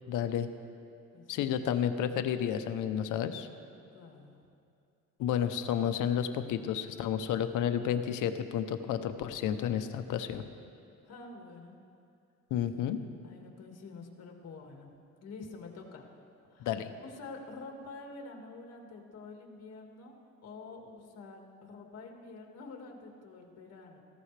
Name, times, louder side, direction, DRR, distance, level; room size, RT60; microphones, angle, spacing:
voice 1, 0.1-0.5 1.3-3.5 5.2-10.4 12.5-13.0 16.6-16.9, left 9 dB, 90° left, 9 dB, 0.8 m, -31 dB
voice 2, 1.1-1.7 3.9-4.4 11.0-11.7 13.2-14.9 15.2-16.1 16.5-16.7 17.0-20.1 20.4-24.0, left 3 dB, 55° left, 1 dB, 2.0 m, -47 dB
18.0 x 15.0 x 3.4 m, 2.5 s
cardioid pair, 90°, 30 cm